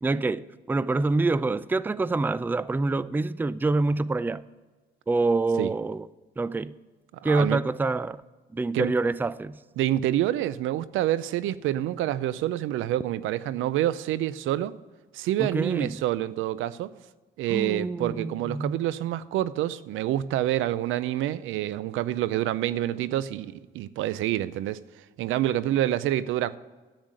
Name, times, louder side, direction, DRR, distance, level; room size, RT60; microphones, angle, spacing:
voice 1, 0.0-4.4 5.1-6.1 6.4-6.7 7.2-8.2 8.5-9.6 15.4-16.0 17.5-18.8, right 3 dB, 10° right, 0.4 m, -26 dB
voice 2, 7.2-7.6 8.7-8.9 9.8-14.8 15.1-16.9 17.4-24.8 25.2-26.6, right 13 dB, 90° right, 0.5 m, -27 dB
10.5 x 8.1 x 7.6 m
cardioid pair, 90°, 20 cm